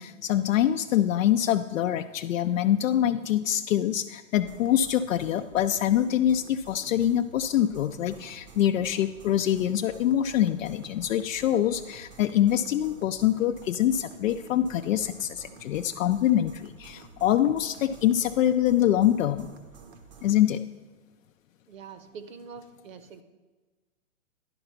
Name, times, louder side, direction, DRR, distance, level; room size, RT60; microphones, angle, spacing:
voice 1, 0.0-19.5 20.2-20.6, left 11 dB, 75° left, 8 dB, 0.5 m, -25 dB
sound 1, 4.3-20.4, right 5 dB, 35° right, 0.6 m, -50 dB
voice 2, 21.7-23.2, right 6 dB, 75° right, 10 dB, 1.0 m, -44 dB
10.5 x 4.0 x 5.6 m, 1.3 s
hypercardioid pair, 140°, 40 cm